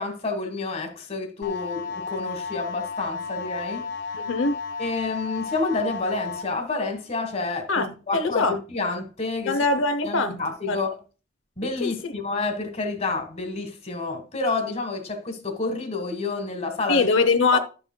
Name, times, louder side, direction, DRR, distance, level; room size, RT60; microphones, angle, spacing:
voice 1, 0.0-3.8 4.8-9.6 10.0-10.9 11.6-17.1 17.5-17.6, left 3 dB, 35° left, 1.5 m, -29 dB
sound 1, 1.4-6.4, left 5 dB, 65° left, 1.9 m, -33 dB
voice 2, 4.2-4.6 7.7-8.6 9.5-10.4 10.7-10.8 11.8-12.1 16.9-17.6, left 3 dB, 90° left, 0.7 m, -22 dB
11.5 x 6.9 x 2.2 m
head